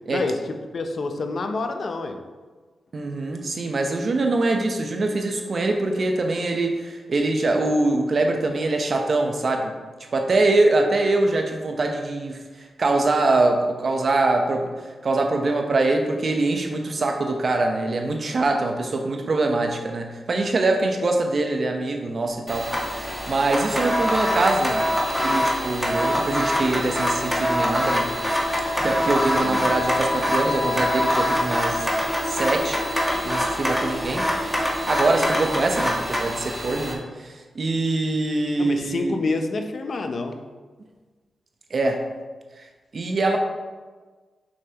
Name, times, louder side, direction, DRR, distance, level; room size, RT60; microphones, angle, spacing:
voice 1, 0.1-2.2 29.4-29.8 38.6-40.4, left 3 dB, 60° left, 6 dB, 0.6 m, -28 dB
voice 2, 2.9-9.7 10.1-12.4 12.8-14.7 15.0-22.7 23.3-24.8 25.2-28.1 28.8-31.9 32.3-32.8 33.2-34.3 34.9-39.2 41.7-42.0 42.9-43.4, right 2 dB, 55° right, 4 dB, 0.9 m, -23 dB
sound 1, 22.5-36.9, equal, ahead, 1.4 m, -25 dB
sound 2, 25.9-35.6, left 2 dB, 90° left, 1.2 m, -31 dB
6.6 x 5.4 x 2.9 m, 1.4 s
cardioid pair, 50°, 0 cm